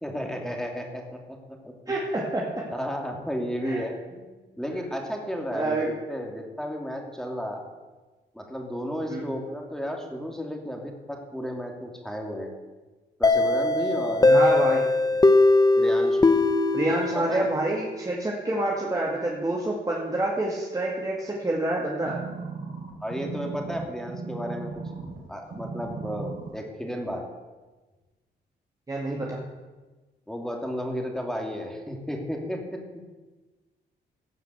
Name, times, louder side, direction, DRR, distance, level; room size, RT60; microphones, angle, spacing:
voice 1, 0.0-1.7 2.7-7.6 8.3-12.5 13.2-14.6 15.0-15.2 15.8-16.4 17.0-17.5 23.0-24.7 25.3-27.2 30.3-33.0, equal, 5° left, 1 dB, 2.6 m, -33 dB
voice 2, 1.9-2.6 3.6-3.8 5.5-5.9 9.1-9.2 14.2-14.8 16.7-22.2 28.9-29.4, right 2 dB, 20° right, -3 dB, 2.2 m, -27 dB
sound 1, 13.2-17.9, left 2 dB, 20° left, 0.9 m, -20 dB
sound 2, 22.0-25.2 25.5-26.5 27.1-27.2, right 4 dB, 45° right, 4.8 m, -36 dB
16.5 x 5.8 x 8.0 m, 1.2 s
cardioid pair, 95°, 18 cm